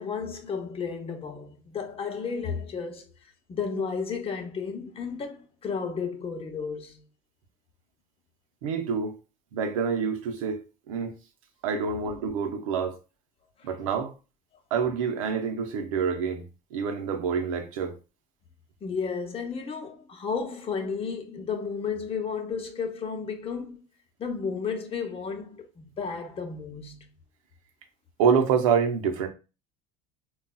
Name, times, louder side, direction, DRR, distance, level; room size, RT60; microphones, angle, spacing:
voice 1, 0.0-3.1 3.5-7.0 13.6-13.7 18.8-23.8 24.2-27.1, left 5 dB, 35° left, 0.9 m, -33 dB
voice 2, 8.6-9.1 9.5-10.6 10.9-11.2 11.6-13.0 13.6-14.1 14.7-16.4 16.7-17.9 28.2-29.3, right 6 dB, 90° right, 0.7 m, -26 dB
3.9 x 2.3 x 2.2 m
supercardioid pair, 90°, 17 cm